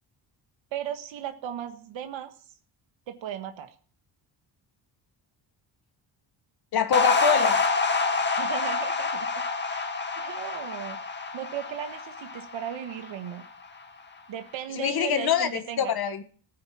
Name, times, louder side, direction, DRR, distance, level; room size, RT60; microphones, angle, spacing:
voice 1, 0.7-2.3 3.1-3.7 8.3-9.3 9.7-9.9 10.2-11.0 11.3-13.4 14.3-15.9, right 10 dB, 85° right, 7 dB, 1.6 m, -36 dB
voice 2, 6.7-7.6 14.8-16.2, left 7 dB, 55° left, 9 dB, 1.5 m, -25 dB
sound 1, 6.9-13.4, left 4 dB, 25° left, 1.9 m, -27 dB
16.0 x 9.5 x 7.4 m, 0.44 s
cardioid pair, 145°, 44 cm